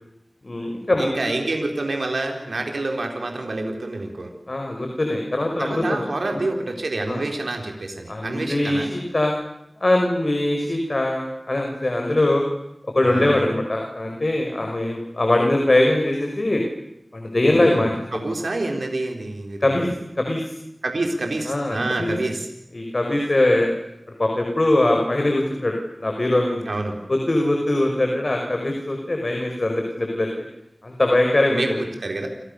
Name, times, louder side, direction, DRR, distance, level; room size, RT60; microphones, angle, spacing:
voice 1, 0.4-1.3 4.5-6.0 6.3-6.4 7.1-7.2 8.1-9.3 9.8-12.4 12.9-16.6 17.1-17.9 19.6-19.9 20.2-20.5 21.5-22.1 22.7-23.7 24.2-26.7 27.1-30.3 30.8-31.8, left 1 dB, 50° left, 2 dB, 5.7 m, -21 dB
voice 2, 1.0-4.3 5.6-8.9 13.0-13.4 17.5-19.8 20.8-22.5 26.7-27.0 31.5-32.3, right 2 dB, 85° right, 3 dB, 4.5 m, -27 dB
29.5 x 29.0 x 6.9 m, 0.81 s
wide cardioid pair, 50°, 0 cm